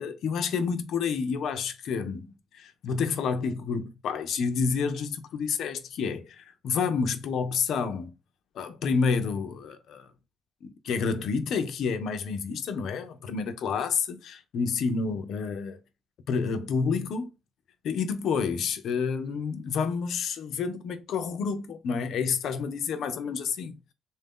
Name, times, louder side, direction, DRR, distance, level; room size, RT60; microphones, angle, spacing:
voice 1, 0.0-8.1 8.5-10.1 10.6-15.8 16.3-17.3 17.8-23.8, left 5 dB, 60° left, 0.6 m, -29 dB
3.7 x 2.7 x 3.6 m
cardioid pair, 175°, 0 cm